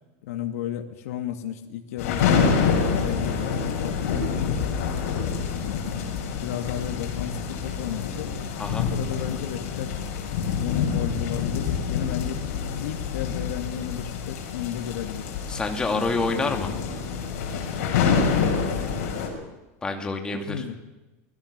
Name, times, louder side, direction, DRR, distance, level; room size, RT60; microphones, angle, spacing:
voice 1, 0.2-4.8 5.7-6.0 6.4-8.3 8.7-10.0 10.6-12.5 12.8-15.3 15.9-16.6 18.1-18.8 20.4-20.8, left 10 dB, 85° left, 4 dB, 2.4 m, -34 dB
sound 1, 2.0-19.3, left 6 dB, 70° left, 7.3 m, -27 dB
voice 2, 15.5-16.7 19.8-20.6, left 3 dB, 10° left, 4 dB, 2.3 m, -27 dB
28.0 x 20.5 x 6.8 m, 1.1 s
supercardioid pair, 175°, 8 cm